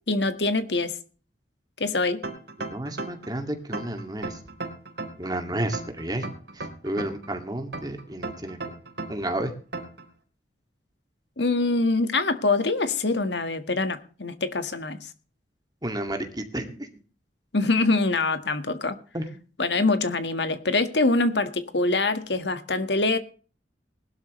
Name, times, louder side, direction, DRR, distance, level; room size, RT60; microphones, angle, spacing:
voice 1, 0.1-1.0 1.8-2.2 11.4-15.1 17.5-19.0 19.6-23.2, left 3 dB, 70° left, 1.8 m, -24 dB
sound 1, 2.2-3.3 3.7-5.3 5.7-7.3 7.7-9.3 9.7-10.0, right 2 dB, 65° right, 4.0 m, -35 dB
voice 2, 2.7-4.4 5.2-6.2 6.6-8.6 9.1-9.5 15.8-16.8 19.1-19.3, right 1 dB, 25° right, 2.3 m, -31 dB
20.0 x 12.0 x 3.3 m
head